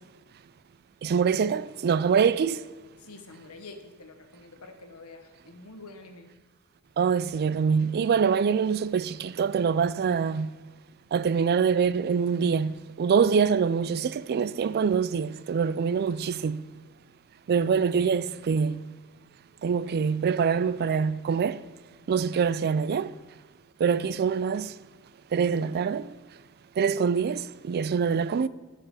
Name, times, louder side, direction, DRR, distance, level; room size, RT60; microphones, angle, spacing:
voice 1, 1.0-2.6 7.0-10.6 11.1-16.7 17.5-18.8 19.6-21.6 22.1-23.2 23.8-24.7 25.3-26.1 26.8-28.5, right 6 dB, 45° right, 0.3 m, -25 dB
voice 2, 3.0-6.3, left 3 dB, 90° left, 1.3 m, -47 dB
12.0 x 5.0 x 6.2 m
head